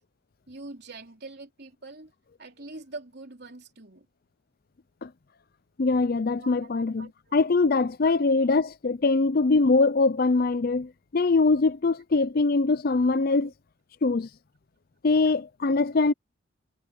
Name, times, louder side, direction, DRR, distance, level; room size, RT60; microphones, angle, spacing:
voice 1, 0.5-2.1 2.4-4.1 6.4-7.3 13.1-13.5, right 2 dB, 55° right, 3.7 m, -44 dB
voice 2, 5.8-13.5 14.0-14.3 15.0-16.1, left 3 dB, 50° left, 0.5 m, -23 dB
head